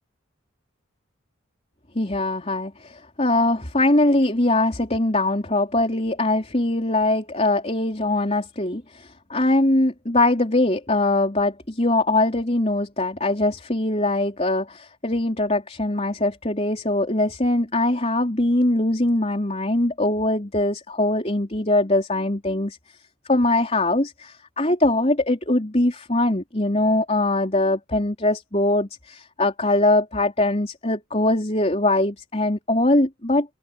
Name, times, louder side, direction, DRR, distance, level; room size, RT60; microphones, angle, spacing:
voice 1, 2.0-22.8 23.3-33.5, left 2 dB, 30° left, 4.1 m, -22 dB
head